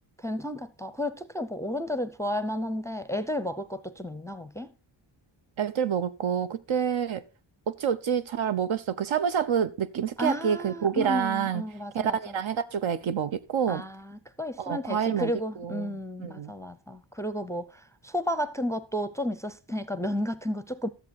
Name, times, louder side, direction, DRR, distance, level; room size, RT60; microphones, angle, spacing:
voice 1, 0.2-4.7 10.2-12.4 13.7-20.9, left 1 dB, 5° left, 0.5 m, -32 dB
voice 2, 5.6-7.2 7.7-11.6 11.9-13.8 14.6-15.3 15.6-16.5, right 8 dB, 75° right, 1.0 m, -28 dB
13.5 x 7.5 x 4.3 m
wide cardioid pair, 170°, 47 cm